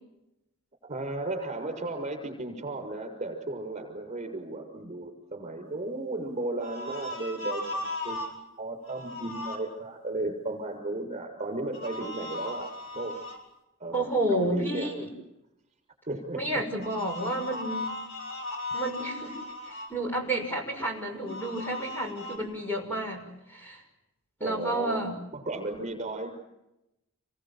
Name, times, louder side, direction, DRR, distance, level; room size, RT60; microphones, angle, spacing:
voice 1, 0.9-13.2 13.8-14.9 16.1-16.4 24.4-25.0 25.3-26.4, right 2 dB, 35° right, 5 dB, 6.6 m, -35 dB
sound 1, 6.6-8.3 8.8-9.6 11.7-13.4 16.8-19.9 21.2-22.4, left 2 dB, 80° left, 7.2 m, -37 dB
voice 2, 13.9-15.1 16.3-17.9 18.7-19.4 19.6-23.8 24.4-25.2, right 1 dB, 10° left, 2 dB, 6.1 m, -31 dB
28.5 x 24.0 x 7.8 m, 0.90 s
head